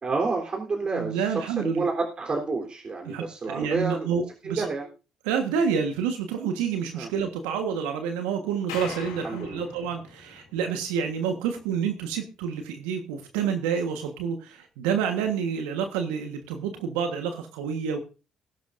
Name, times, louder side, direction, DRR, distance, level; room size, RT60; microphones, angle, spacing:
voice 1, 0.0-4.1 4.4-4.9 7.0-7.1 9.2-9.6, right 3 dB, 40° right, 1 dB, 3.7 m, -29 dB
voice 2, 0.9-1.9 3.0-4.7 5.2-18.0, right 7 dB, 80° right, 5 dB, 1.4 m, -28 dB
sound 1, 8.7-11.0, left 6 dB, 85° left, 4.1 m, -41 dB
20.0 x 11.5 x 2.6 m, 0.34 s
hypercardioid pair, 45°, 2 cm